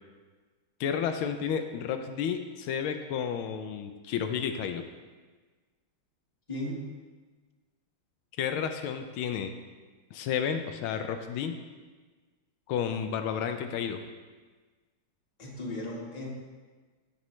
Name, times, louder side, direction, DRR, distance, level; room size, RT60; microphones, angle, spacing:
voice 1, 0.8-4.8 8.4-9.5 10.1-11.6 12.7-14.0, left 7 dB, 85° left, 7 dB, 1.4 m, -31 dB
voice 2, 6.5-6.9 15.4-16.3, left 1 dB, 20° left, -4 dB, 1.5 m, -36 dB
15.0 x 5.0 x 3.2 m, 1.4 s
omnidirectional pair, 2.2 m